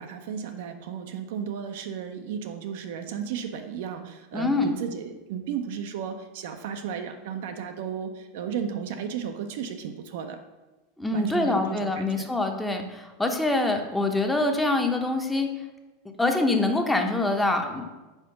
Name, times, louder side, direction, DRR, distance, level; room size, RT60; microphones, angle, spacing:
voice 1, 0.0-10.4 11.1-12.3, right 7 dB, 65° right, 6 dB, 0.6 m, -34 dB
voice 2, 4.3-4.7 11.0-15.5 16.2-17.9, left 2 dB, 10° left, 4 dB, 0.8 m, -25 dB
4.4 x 4.4 x 5.7 m, 1.2 s
hypercardioid pair, 90°, 0 cm